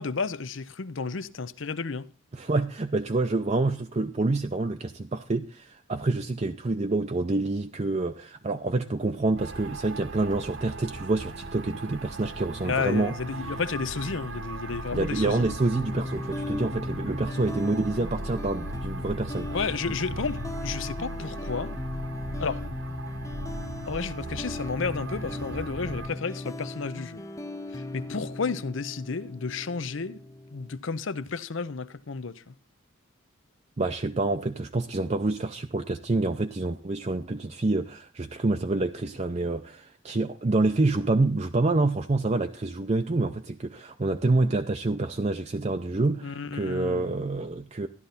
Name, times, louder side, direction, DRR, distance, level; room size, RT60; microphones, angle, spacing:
voice 1, 0.0-2.1 12.6-15.5 19.5-21.7 22.4-22.6 23.9-27.2 27.7-30.2 30.5-32.5 46.2-47.2, left 4 dB, 70° left, 0.7 m, -32 dB
voice 2, 2.3-13.1 14.9-19.5 33.8-47.9, right 2 dB, 35° right, 0.5 m, -27 dB
sound 1, 9.4-26.1, right 2 dB, 70° right, 1.2 m, -38 dB
sound 2, 15.7-30.8, left 2 dB, 15° left, 0.5 m, -37 dB
13.5 x 11.5 x 4.1 m
head